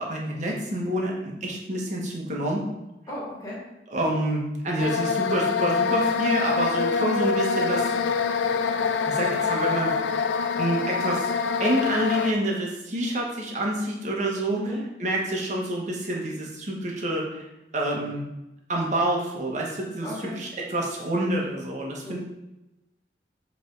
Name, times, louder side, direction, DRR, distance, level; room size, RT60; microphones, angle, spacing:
voice 1, 0.0-2.6 3.9-7.9 9.0-10.3 10.6-11.3 11.6-14.6 15.0-17.4 17.7-18.2 18.7-22.2, right 1 dB, 40° right, -2 dB, 1.3 m, -27 dB
voice 2, 3.1-3.6 9.1-9.4 14.5-14.8 20.0-20.4 22.0-22.2, equal, 20° left, -7 dB, 2.3 m, -36 dB
sound 1, 4.8-12.3, left 5 dB, 90° left, 0.4 m, -25 dB
7.5 x 3.5 x 3.9 m, 0.95 s
head